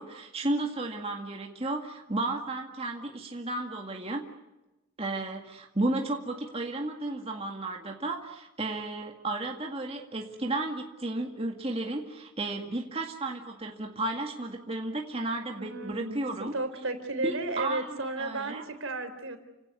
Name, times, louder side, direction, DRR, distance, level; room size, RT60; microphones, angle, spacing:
voice 1, 0.0-4.2 5.0-16.5 17.2-18.6, right 2 dB, 25° right, 2 dB, 2.0 m, -33 dB
voice 2, 15.6-16.2 16.5-19.4, right 2 dB, 70° right, 8 dB, 3.8 m, -33 dB
30.0 x 17.5 x 9.6 m, 1.0 s
head